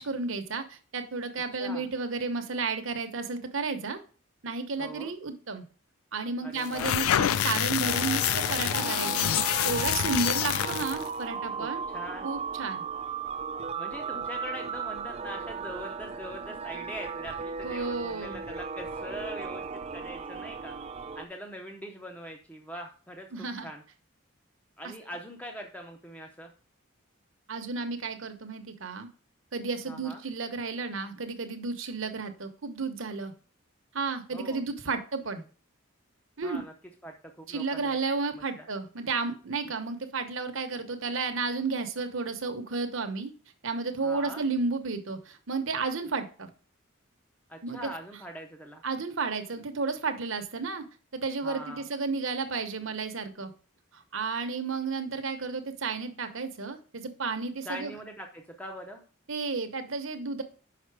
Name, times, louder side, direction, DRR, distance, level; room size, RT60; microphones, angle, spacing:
voice 1, 0.0-4.0 4.4-5.6 6.1-11.9 12.2-12.8 17.6-18.4 23.3-23.7 24.8-24.9 27.5-29.1 29.5-33.3 33.9-35.4 36.4-36.6 37.5-43.3 43.6-46.5 47.6-47.8 48.8-50.8 51.1-53.5 53.9-57.9 59.3-60.4, right 4 dB, 65° right, 7 dB, 0.9 m, -32 dB
voice 2, 4.8-5.1 6.4-7.0 11.5-12.3 13.7-20.7 21.2-23.8 24.8-26.5 29.9-30.2 34.3-34.6 36.4-36.7 37.0-38.0 38.3-38.7 44.0-44.4 47.5-48.8 51.4-51.8 57.6-59.0, equal, 5° left, 2 dB, 0.7 m, -42 dB
sound 1, 6.6-11.1, left 10 dB, 85° left, 0.3 m, -27 dB
sound 2, 7.8-21.3, right 5 dB, 30° right, 0.3 m, -36 dB
5.8 x 5.3 x 4.7 m, 0.39 s
head